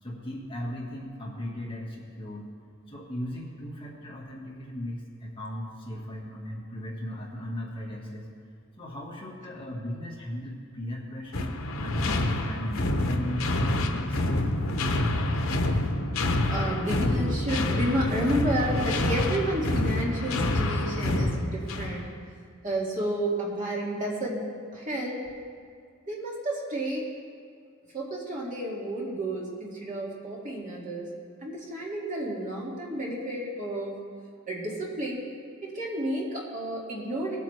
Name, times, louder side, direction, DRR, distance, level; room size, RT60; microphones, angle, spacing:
voice 1, 0.0-2.5 2.9-8.3 8.8-14.5, left 1 dB, 25° left, -4 dB, 1.6 m, -37 dB
sound 1, 11.3-22.1, left 1 dB, 85° left, 0.9 m, -27 dB
voice 2, 16.5-22.0 22.6-24.4 24.7-25.2 26.1-27.1 27.9-31.1 31.4-33.9 34.5-35.3 35.6-37.4, right 1 dB, 40° right, -4 dB, 2.2 m, -31 dB
19.0 x 8.3 x 3.3 m, 2.1 s
head